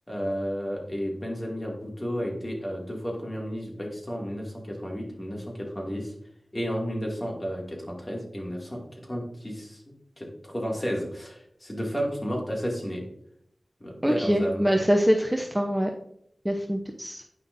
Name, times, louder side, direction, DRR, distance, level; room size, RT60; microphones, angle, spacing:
voice 1, 0.1-6.1 6.5-9.8 10.2-13.0 13.8-14.8, equal, 25° left, -1 dB, 2.4 m, -32 dB
voice 2, 14.0-15.9 16.4-17.2, equal, 10° right, 2 dB, 0.8 m, -24 dB
9.4 x 5.7 x 2.7 m, 0.71 s
cardioid pair, 45°, 0 cm